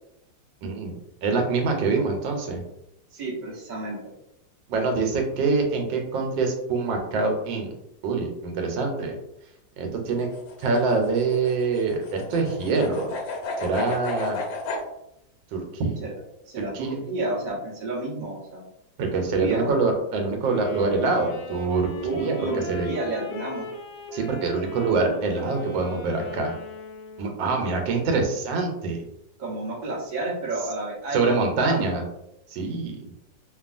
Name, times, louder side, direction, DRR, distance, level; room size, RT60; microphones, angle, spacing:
voice 1, 0.6-2.6 4.7-7.7 8.0-9.1 9.8-10.3 10.6-13.1 13.6-14.4 15.5-16.0 16.6-17.0 19.0-22.9 24.1-26.5 27.2-29.1 31.1-32.0 32.5-33.1, right 3 dB, 85° right, 3 dB, 1.3 m, -25 dB
voice 2, 3.1-4.0 16.0-16.1 16.5-18.6 19.2-19.7 22.0-23.6 29.4-32.0, right 2 dB, 40° right, -5 dB, 0.6 m, -31 dB
sound 1, 10.1-14.8, left 3 dB, 90° left, 1.3 m, -33 dB
Wind instrument woodwind instrument, 20.4-27.6, left 2 dB, 75° left, 1.1 m, -39 dB
3.0 x 2.3 x 2.4 m, 0.82 s
omnidirectional pair, 2.0 m